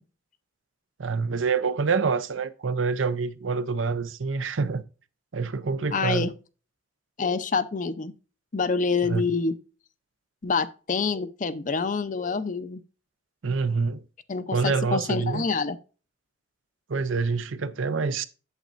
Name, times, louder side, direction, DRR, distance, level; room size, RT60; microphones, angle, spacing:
voice 1, 1.0-4.8 5.3-6.3 9.0-9.2 13.4-14.0 14.5-15.4 16.9-18.2, right 4 dB, 85° right, 0.6 m, -26 dB
voice 2, 5.9-6.3 7.2-8.1 8.5-9.6 10.4-12.8 14.3-15.8, left 4 dB, 40° left, 0.5 m, -27 dB
8.2 x 7.4 x 2.5 m
head